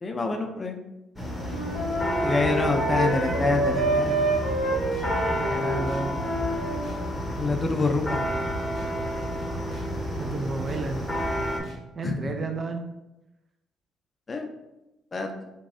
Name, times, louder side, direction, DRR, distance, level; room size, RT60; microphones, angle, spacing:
voice 1, 0.0-0.8 2.2-4.3 7.4-8.2 12.0-12.3 14.3-14.5 15.1-15.3, left 3 dB, 35° left, 4 dB, 0.5 m, -27 dB
sound 1, 1.2-11.6, equal, 10° left, 0.8 m, -30 dB
Wind instrument woodwind instrument, 1.4-7.0, right 1 dB, 80° right, 1.0 m, -28 dB
sound 2, 4.4-4.6 4.9-5.0 5.4-5.5 5.9-6.0 6.4-6.5 6.8-7.0 7.3-7.4 7.8-7.9 8.3-8.4 8.8-8.9 9.2-9.4 9.7-9.8 10.2-10.3 10.7-10.8 11.2-11.3 11.6-11.8, right 2 dB, 55° right, 1.5 m, -41 dB
voice 2, 5.4-6.1 10.2-11.0 12.0-12.8, right 3 dB, 40° right, 5 dB, 0.4 m, -31 dB
3.1 x 2.6 x 2.6 m, 0.95 s
supercardioid pair, 60°, 0 cm